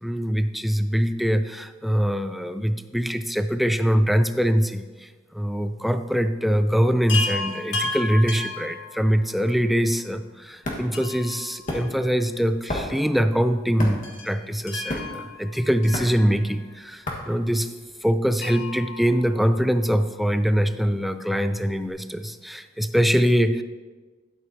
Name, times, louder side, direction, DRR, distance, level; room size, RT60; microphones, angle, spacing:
voice 1, 0.0-17.7 18.0-23.6, equal, ahead, 10 dB, 0.3 m, -23 dB
Chime, 7.1-9.5 10.9-12.5 12.7-12.8 14.0-16.7 18.4-20.0 21.6-21.7 21.9-22.0, left 3 dB, 75° left, 1.8 m, -34 dB
sound 1, 10.0-18.2, left 1 dB, 40° left, 1.4 m, -34 dB
12.0 x 9.1 x 2.7 m, 1.4 s
head